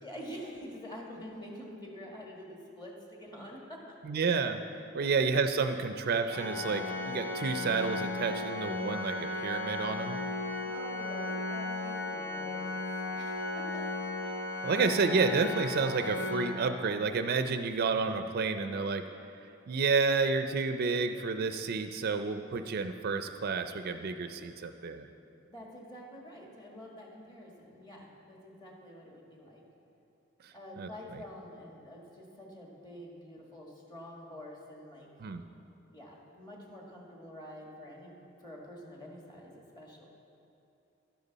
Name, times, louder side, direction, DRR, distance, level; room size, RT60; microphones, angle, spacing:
voice 1, 0.0-4.0 5.0-5.2 10.7-12.9 13.1-14.0 25.5-29.6 30.5-35.1 35.9-40.1, equal, 20° left, -1 dB, 1.7 m, -47 dB
voice 2, 4.0-4.6 4.9-10.2 14.6-19.0 19.7-25.1 30.4-30.9 35.2-35.4, right 4 dB, 50° right, 8 dB, 0.4 m, -30 dB
Organ, 6.3-17.1, left 2 dB, 85° left, 1.5 m, -36 dB
12.0 x 10.5 x 4.0 m, 2.8 s
head